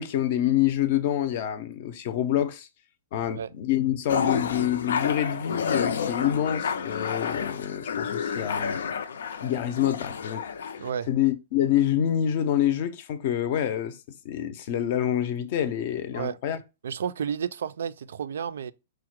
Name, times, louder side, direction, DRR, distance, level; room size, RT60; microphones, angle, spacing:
voice 1, 0.0-2.7 3.1-8.8 9.4-10.5 11.1-14.0 14.2-16.6, left 11 dB, 40° left, 0.5 m, -26 dB
sound 1, 4.1-10.9, left 6 dB, 90° left, 0.5 m, -30 dB
voice 2, 16.8-18.7, right 7 dB, 80° right, 0.3 m, -31 dB
4.6 x 2.1 x 4.5 m
hypercardioid pair, 175°, 0 cm